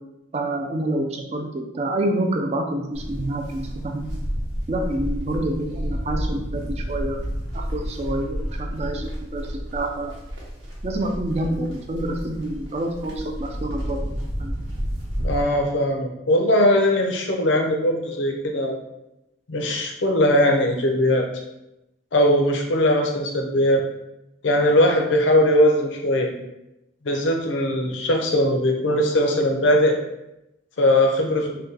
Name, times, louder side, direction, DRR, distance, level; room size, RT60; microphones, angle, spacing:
voice 1, 0.3-4.1 4.7-7.2 7.5-10.1 10.8-14.1 14.4-14.5, right 1 dB, 35° right, 3 dB, 0.3 m, -27 dB
Livestock farm animals working animals, 2.9-15.4, equal, 80° right, 0.8 m, -30 dB
voice 2, 15.2-18.8 19.5-21.3 22.1-23.8 24.4-26.3 27.0-30.0 30.8-31.5, left 1 dB, 75° left, 2 dB, 0.5 m, -20 dB
2.7 x 2.2 x 3.7 m, 0.90 s
head